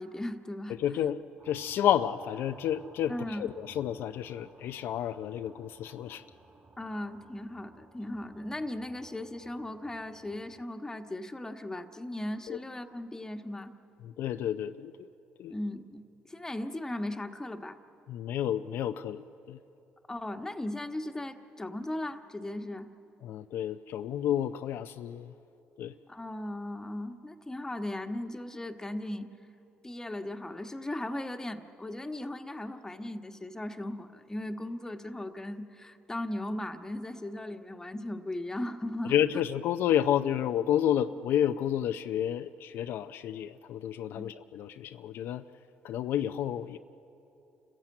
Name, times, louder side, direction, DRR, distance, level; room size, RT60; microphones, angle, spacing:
voice 1, 0.0-1.1 3.1-3.5 6.8-13.7 15.5-17.8 20.1-22.9 26.1-29.3 29.8-39.1 44.2-44.3, left 1 dB, 15° left, 6 dB, 1.4 m, -37 dB
voice 2, 0.8-6.2 12.5-12.6 14.0-15.1 15.4-15.5 18.1-19.6 23.2-25.3 25.8-25.9 39.0-45.4 45.8-46.8, left 10 dB, 70° left, 9 dB, 0.5 m, -30 dB
sound 1, 1.4-10.6, right 3 dB, 30° right, 4.2 m, -57 dB
28.5 x 15.0 x 8.7 m, 2.9 s
supercardioid pair, 75°, 4 cm